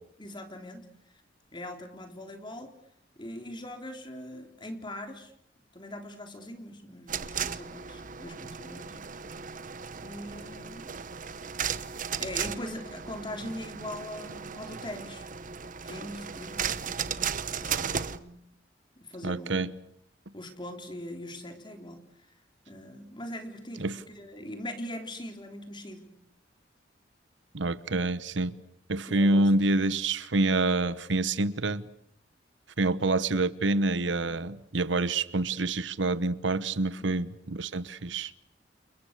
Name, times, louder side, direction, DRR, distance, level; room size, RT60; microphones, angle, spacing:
voice 1, 0.2-0.9 1.5-2.7 3.2-5.3 5.7-9.0 10.0-10.9 12.2-15.3 15.8-17.2 17.6-18.4 19.0-19.6 20.3-22.3 22.7-26.1 29.1-29.5 37.0-37.1, left 1 dB, 25° left, 3.6 m, -41 dB
sound 1, 7.1-18.2, right 7 dB, 45° right, 1.0 m, -36 dB
voice 2, 19.2-19.7 23.8-24.0 27.5-28.6 28.9-31.9 32.8-38.3, right 2 dB, 75° right, 1.1 m, -27 dB
30.0 x 29.0 x 6.7 m
head